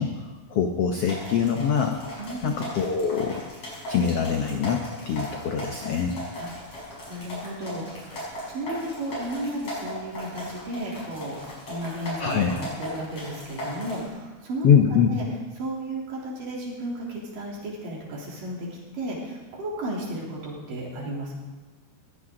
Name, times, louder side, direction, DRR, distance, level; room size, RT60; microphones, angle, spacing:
voice 1, 0.0-2.0 2.4-3.4 3.9-6.1 12.2-12.6 14.6-15.1, left 7 dB, 75° left, 4 dB, 1.4 m, -23 dB
sound 1, 1.0-14.1, equal, 40° left, 6.6 m, -37 dB
voice 2, 2.2-2.7 6.4-8.2 8.5-11.4 11.7-15.2 15.6-18.7 18.9-21.4, right 1 dB, 65° right, -3 dB, 5.0 m, -34 dB
20.0 x 16.5 x 3.9 m, 1.2 s
omnidirectional pair, 4.2 m